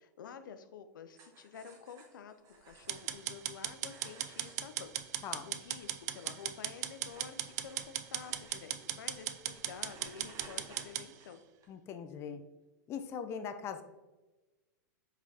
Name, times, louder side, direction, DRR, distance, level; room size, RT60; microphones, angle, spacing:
voice 1, 0.0-11.4, left 7 dB, 85° left, 10 dB, 0.5 m, -50 dB
sound 1, 1.1-11.7, right 3 dB, 30° right, 1.0 m, -58 dB
sound 2, 2.9-11.1, right 12 dB, 55° right, 0.4 m, -37 dB
voice 2, 11.7-12.4 12.9-13.8, left 7 dB, 25° left, 8 dB, 0.4 m, -40 dB
4.9 x 3.5 x 2.8 m, 1.1 s
hypercardioid pair, 130°, 10 cm